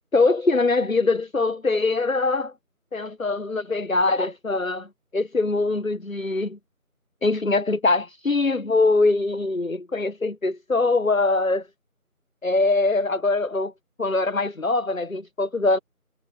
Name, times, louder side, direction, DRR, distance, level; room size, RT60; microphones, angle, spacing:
voice 1, 0.1-2.5 2.9-4.9 5.1-6.6 7.2-11.6 12.4-13.7 14.0-15.8, left 3 dB, 65° left, 1.1 m, -22 dB
figure-of-eight pair, 180°, 44 cm